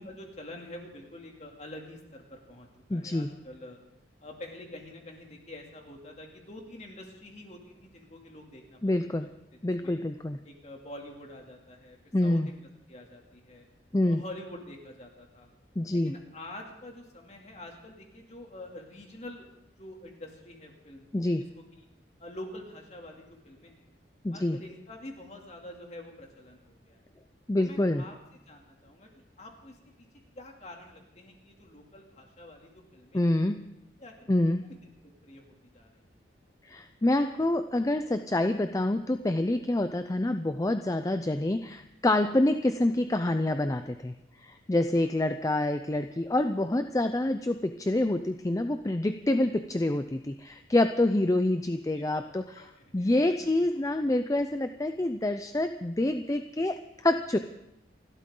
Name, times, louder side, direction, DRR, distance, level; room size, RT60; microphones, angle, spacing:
voice 1, 0.0-3.8 4.2-9.1 9.8-10.0 10.4-12.6 12.9-13.6 14.0-15.5 16.0-19.5 19.8-21.3 21.7-21.9 22.2-23.8 24.3-27.0 27.6-28.2 28.5-29.8 30.4-33.2 34.0-34.3 34.6-34.8 35.2-36.1 44.9-45.0 51.9-52.3 52.6-53.5, left 1 dB, 40° left, 1 dB, 2.7 m, -46 dB
voice 2, 2.9-3.3 8.8-9.3 9.6-10.4 12.1-12.5 13.9-14.2 15.8-16.1 21.1-21.4 24.2-24.6 27.5-28.0 33.1-33.6 34.3-34.7 36.6-52.6 52.9-57.4, left 1 dB, 20° left, 8 dB, 0.5 m, -27 dB
28.5 x 12.5 x 3.8 m, 0.84 s
head